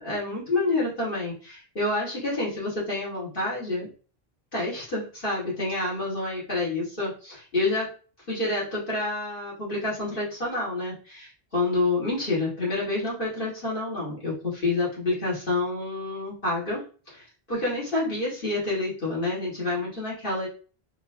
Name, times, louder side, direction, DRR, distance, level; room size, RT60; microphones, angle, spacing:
voice 1, 0.0-3.9 4.5-7.9 8.3-20.5, left 2 dB, 55° left, -7 dB, 2.3 m, -28 dB
4.5 x 3.0 x 2.8 m, 0.38 s
omnidirectional pair, 1.1 m